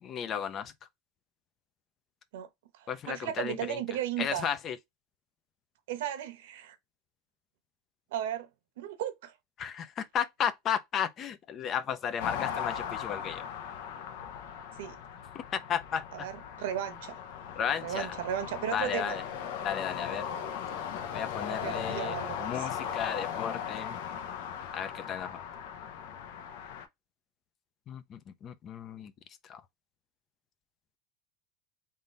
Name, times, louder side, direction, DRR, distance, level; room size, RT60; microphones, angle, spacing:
voice 1, 0.0-0.7 2.9-3.8 4.2-4.8 9.6-13.4 15.3-16.3 17.6-18.1 18.7-19.2 19.6-20.3 21.1-24.0 24.7-25.5 27.9-29.1 29.4-29.6, left 8 dB, 30° left, 0.5 m, -34 dB
voice 2, 2.8-4.5 5.9-6.8 8.1-8.5 8.8-9.3 14.8-15.0 16.1-16.3 16.6-17.2 17.8-19.2 21.5-22.7, right 10 dB, 80° right, 1.0 m, -35 dB
sound 1, 12.2-26.9, left 8 dB, 70° left, 0.8 m, -38 dB
3.8 x 2.6 x 3.9 m
supercardioid pair, 160°, 0 cm